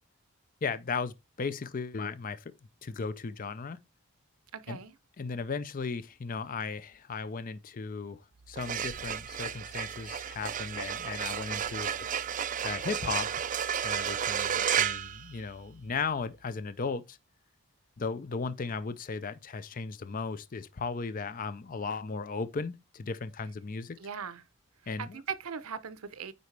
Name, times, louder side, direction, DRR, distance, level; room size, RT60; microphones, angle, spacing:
voice 1, 0.6-2.5 2.8-3.8 4.7-4.8 5.2-8.2 8.5-11.9 12.6-13.4 13.8-17.2 18.0-24.0 24.9-25.2, left 4 dB, 40° left, 0.5 m, -36 dB
voice 2, 4.5-5.0 24.0-24.5 25.0-26.3, right 6 dB, 85° right, 0.7 m, -39 dB
sound 1, 8.4-15.9, right 8 dB, 35° right, 0.4 m, -33 dB
9.5 x 4.1 x 3.3 m
head